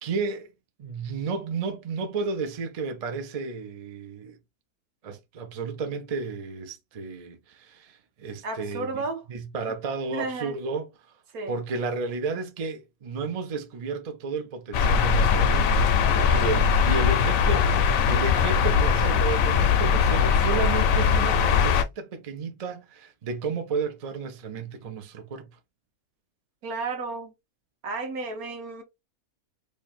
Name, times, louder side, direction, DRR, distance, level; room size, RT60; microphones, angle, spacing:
voice 1, 0.0-0.5 0.8-4.4 5.0-9.0 9.3-10.9 11.5-25.5, right 4 dB, 55° right, 0.4 m, -32 dB
voice 2, 8.4-9.2 10.1-10.6 11.3-11.6 16.0-16.5 26.6-27.3 27.8-28.8, right 3 dB, 75° right, 1.4 m, -33 dB
sound 1, 14.7-21.8, left 6 dB, 70° left, 1.0 m, -21 dB
3.2 x 2.4 x 4.0 m
omnidirectional pair, 1.5 m